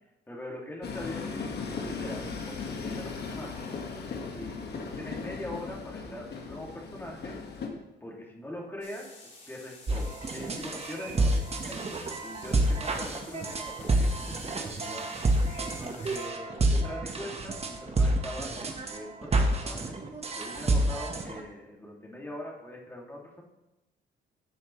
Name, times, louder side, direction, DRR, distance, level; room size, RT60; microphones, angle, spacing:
voice 1, 0.3-3.7 4.3-7.4 8.0-11.8 12.2-15.2 15.6-19.8 20.3-23.4, left 1 dB, 10° left, -3 dB, 2.5 m, -42 dB
Train, 0.8-7.7, left 4 dB, 55° left, 1.7 m, -37 dB
sound 1, 8.8-16.3, left 2 dB, 40° left, 3.7 m, -50 dB
sound 2, 9.9-21.4, right 2 dB, 30° right, 1.3 m, -28 dB
12.5 x 7.4 x 3.2 m, 0.96 s
cardioid pair, 90°, 20 cm